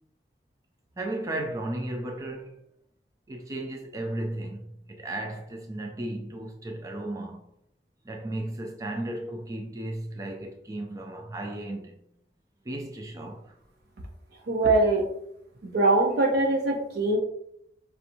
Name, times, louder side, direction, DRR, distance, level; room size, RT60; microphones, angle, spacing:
voice 1, 1.0-2.6 3.3-7.4 8.0-12.0 12.7-13.5, right 1 dB, 20° right, 0.4 m, -35 dB
voice 2, 14.5-15.0 15.7-17.2, right 2 dB, 60° right, 0.6 m, -22 dB
5.5 x 2.8 x 2.6 m
head